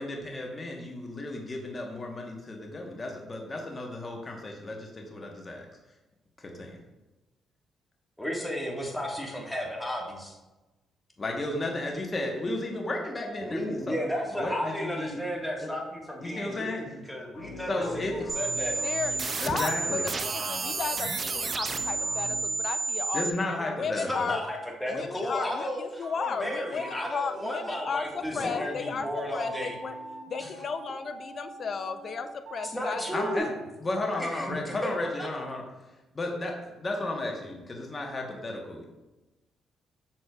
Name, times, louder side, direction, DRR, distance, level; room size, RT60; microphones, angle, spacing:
voice 1, 0.0-5.7 6.4-6.8 11.2-14.0 14.4-15.2 15.6-15.7 16.2-16.8 17.7-18.1 19.4-20.1 23.1-24.3 28.3-28.7 33.1-33.5 33.8-35.6 36.1-38.9, left 2 dB, 30° left, 1 dB, 1.1 m, -33 dB
voice 2, 8.2-10.4 13.4-18.8 23.9-29.8 30.4-30.5 32.7-33.6 34.2-34.9 35.2-35.3, equal, 5° left, -1 dB, 1.5 m, -33 dB
sound 1, 17.3-22.4, left 2 dB, 85° left, 1.0 m, -43 dB
sound 2, 18.3-23.3, right 4 dB, 35° right, 0.5 m, -31 dB
voice 3, 18.8-24.4 24.9-29.9 30.3-33.0 34.0-34.2, left 6 dB, 50° left, 10 dB, 0.5 m, -35 dB
sound 3, 26.0-33.4, right 3 dB, 70° right, 0.8 m, -43 dB
7.2 x 6.3 x 2.3 m, 1.1 s
cardioid pair, 90°, 0 cm